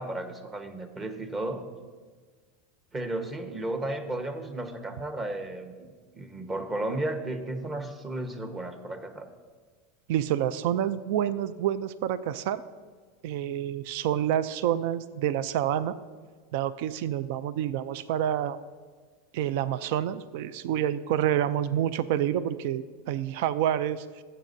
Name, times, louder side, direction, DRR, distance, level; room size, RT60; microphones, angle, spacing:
voice 1, 0.0-1.6 2.9-9.3, right 2 dB, 25° right, 6 dB, 1.2 m, -34 dB
voice 2, 10.1-12.6 13.2-16.0 16.5-18.6 19.3-24.2, right 11 dB, 65° right, 15 dB, 0.4 m, -28 dB
16.5 x 7.6 x 2.7 m, 1.5 s
hypercardioid pair, 100°, 0 cm